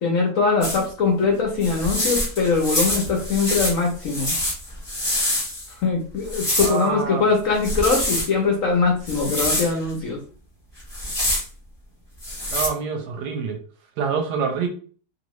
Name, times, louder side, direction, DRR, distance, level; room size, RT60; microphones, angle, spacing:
voice 1, 0.0-4.4 5.8-10.2, left 4 dB, 60° left, 0 dB, 0.9 m, -22 dB
sound 1, 0.6-0.8 1.6-5.7 6.2-6.8 7.5-8.3 9.1-9.7 10.8-11.4 12.2-12.7, left 1 dB, 20° left, 0.8 m, -25 dB
voice 2, 6.6-7.3 12.5-13.6 14.0-14.7, right 6 dB, 75° right, 4 dB, 1.1 m, -26 dB
2.8 x 2.6 x 3.0 m, 0.42 s
omnidirectional pair, 2.0 m